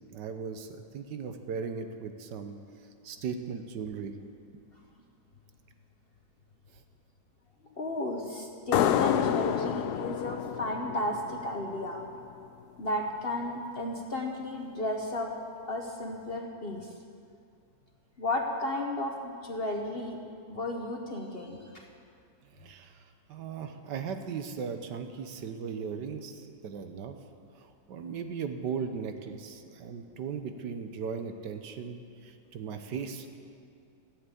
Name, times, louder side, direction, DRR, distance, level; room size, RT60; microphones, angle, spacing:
voice 1, 0.1-2.6 3.0-4.1 22.5-23.0 23.3-27.2 27.6-33.3, right 6 dB, 75° right, 7 dB, 1.5 m, -37 dB
voice 2, 7.8-12.1 12.8-15.3 15.6-16.9 18.2-20.2 20.5-21.9, left 1 dB, 40° left, 2 dB, 0.9 m, -33 dB
sound 1, 8.7-12.0, left 10 dB, 70° left, 1.1 m, -29 dB
14.5 x 8.0 x 8.3 m, 2.4 s
omnidirectional pair, 1.9 m